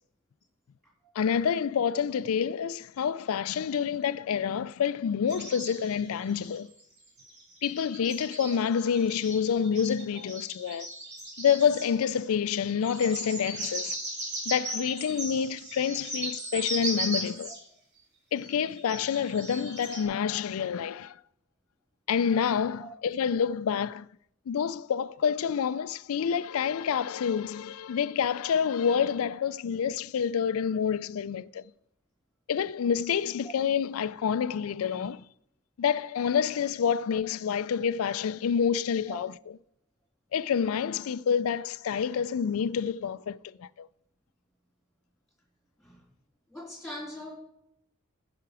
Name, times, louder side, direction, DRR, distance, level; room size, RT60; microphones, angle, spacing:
voice 1, 1.2-6.7 7.6-10.9 11.4-14.0 14.5-17.5 18.3-21.2 22.1-24.1 24.5-31.6 32.5-35.2 35.8-39.3 40.3-43.9, left 7 dB, 75° left, 0.4 m, -28 dB
sound 1, 5.3-6.8 7.2-12.2 12.7-17.6 18.4-20.0, right 2 dB, 50° right, 3.0 m, -37 dB
voice 2, 46.5-47.4, equal, ahead, 3.1 m, -41 dB
15.0 x 5.9 x 4.8 m
head